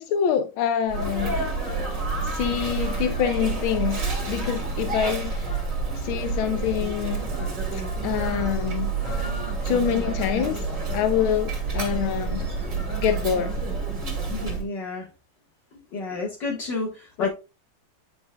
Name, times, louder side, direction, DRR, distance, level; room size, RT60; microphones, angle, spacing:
voice 1, 0.0-1.3 2.2-5.4 6.0-7.2 7.7-8.9 9.6-10.7 10.9-12.5 13.0-13.6 17.2-17.3, left 9 dB, 85° left, 1.6 m, -26 dB
Sneeze, 0.9-14.6, right 3 dB, 45° right, 2.0 m, -28 dB
voice 2, 14.3-15.1 15.9-17.3, left 4 dB, 65° left, 2.1 m, -30 dB
8.9 x 5.2 x 2.2 m
omnidirectional pair, 2.2 m